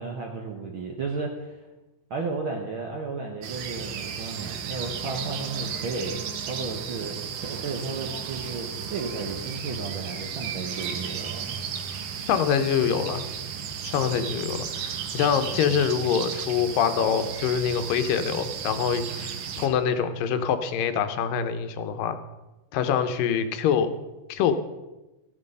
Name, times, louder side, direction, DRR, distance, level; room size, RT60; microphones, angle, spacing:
voice 1, 0.0-1.7 2.1-11.6, right 3 dB, 60° right, 1 dB, 1.4 m, -33 dB
sound 1, 3.4-19.7, right 7 dB, 90° right, 2.7 m, -34 dB
voice 2, 12.3-13.2 13.8-22.2 22.7-24.0 24.3-24.5, left 7 dB, 90° left, 9 dB, 2.6 m, -25 dB
14.5 x 8.9 x 5.4 m, 1.1 s
omnidirectional pair, 3.8 m